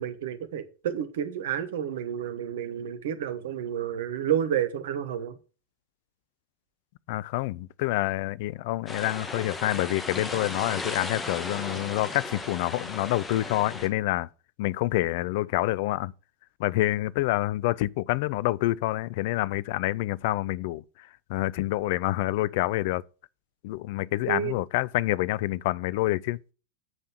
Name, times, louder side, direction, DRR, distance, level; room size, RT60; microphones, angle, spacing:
voice 1, 0.0-5.3 24.3-24.6, right 9 dB, 55° right, 1.2 m, -30 dB
voice 2, 7.1-14.3 14.6-16.1 16.6-23.0 23.6-26.4, left 17 dB, 50° left, 0.4 m, -27 dB
sound 1, 8.9-13.9, left 2 dB, 15° left, 1.6 m, -36 dB
8.1 x 5.5 x 7.6 m
figure-of-eight pair, 90°, 0 cm